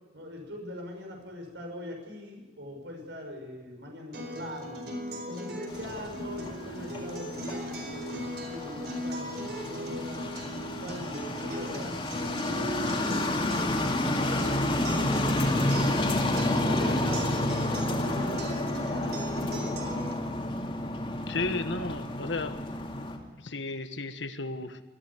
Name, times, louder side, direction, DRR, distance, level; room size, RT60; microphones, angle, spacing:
voice 1, 0.1-4.8 5.2-10.4 10.8-16.0 16.5-19.9, left 1 dB, 80° right, 2 dB, 6.3 m, -42 dB
Acoustic guitar, 4.1-20.1, equal, 65° right, 4.6 m, -38 dB
sound 1, 5.7-23.2, left 1 dB, 30° left, 2.5 m, -30 dB
voice 2, 21.1-22.6 23.4-24.8, left 3 dB, 85° left, 9 dB, 1.5 m, -33 dB
20.5 x 14.0 x 9.8 m, 1.3 s
head